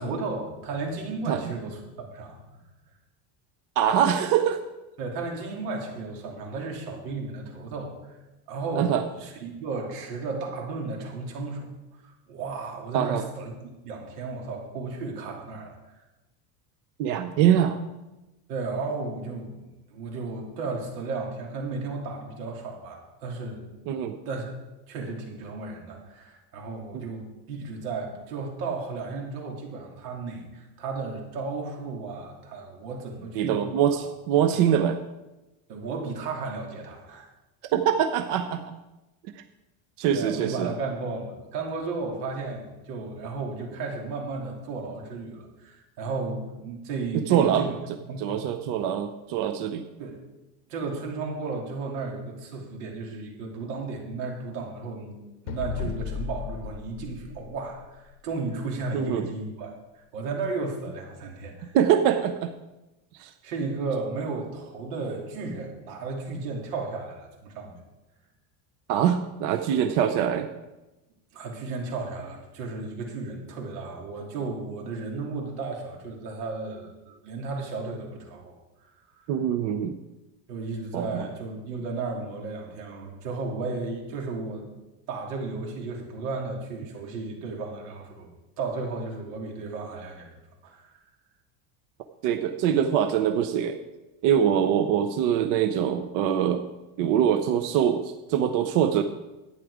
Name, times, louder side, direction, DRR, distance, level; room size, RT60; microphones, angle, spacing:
voice 1, 0.0-2.6 5.0-8.2 8.5-11.7 12.3-15.7 18.5-19.6 19.9-23.9 24.2-24.5 24.9-34.1 34.5-34.6 35.7-37.3 40.1-47.7 48.1-48.3 50.0-50.2 50.7-55.2 55.4-59.7 59.9-61.7 63.4-67.8 71.3-78.6 80.5-84.7 85.1-88.3 88.6-90.4 90.6-91.0, right 3 dB, 85° right, 0 dB, 3.0 m, -34 dB
voice 2, 3.8-4.6 8.8-9.0 12.9-13.2 17.0-17.8 23.9-24.1 26.9-27.0 33.4-35.0 37.7-38.8 40.0-40.7 47.3-47.7 48.2-49.8 58.9-59.3 61.7-62.5 63.2-63.3 68.9-70.5 79.3-80.0 80.9-81.2 92.2-93.8 94.2-96.7 97.0-99.0, right 9 dB, 45° right, 7 dB, 0.6 m, -23 dB
sound 1, 55.5-58.2, left 8 dB, 60° left, 0.8 m, -35 dB
11.5 x 9.2 x 4.9 m, 1.0 s
cardioid pair, 175°, 44 cm